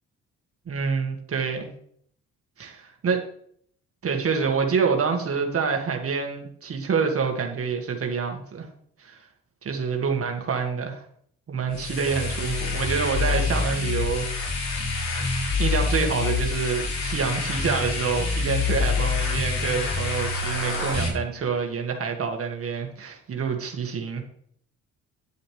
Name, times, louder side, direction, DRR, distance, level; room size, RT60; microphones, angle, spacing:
voice 1, 0.7-1.7 2.6-3.2 4.0-8.7 9.0-9.2 9.6-11.0 11.5-14.6 15.6-24.2, right 5 dB, 50° right, 3 dB, 1.7 m, -27 dB
sound 1, 11.7-21.1, left 4 dB, 60° left, 4.7 m, -26 dB
10.0 x 10.0 x 3.2 m, 0.63 s
cardioid pair, 90°, 30 cm